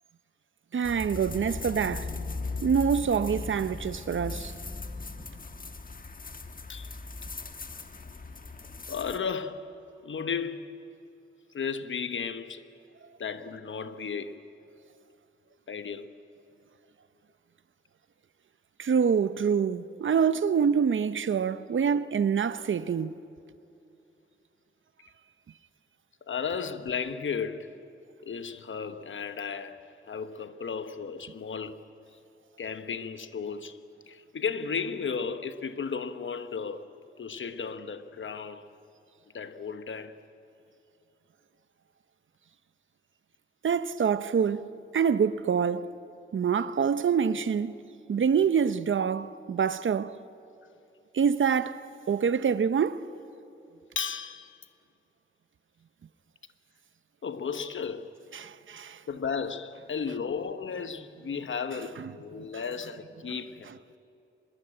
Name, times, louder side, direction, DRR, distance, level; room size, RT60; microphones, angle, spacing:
voice 1, 0.7-2.1 2.6-4.5 18.8-23.1 43.6-44.7 44.9-45.9 46.3-47.8 48.1-50.2 51.1-53.1 58.3-59.0 62.0-62.1, right 7 dB, 70° right, 0.7 m, -26 dB
sound 1, 0.8-9.2, left 3 dB, 45° left, 1.3 m, -38 dB
voice 2, 8.9-9.7 10.0-10.9 11.5-12.6 13.2-14.4 15.7-16.1 26.3-27.8 28.2-29.8 30.1-31.8 32.6-33.8 34.1-36.9 37.2-38.7 39.3-40.2 53.9-54.6 57.2-58.1 59.1-63.7, left 6 dB, 70° left, 1.1 m, -34 dB
24.0 x 21.5 x 8.8 m
wide cardioid pair, 115°, 21 cm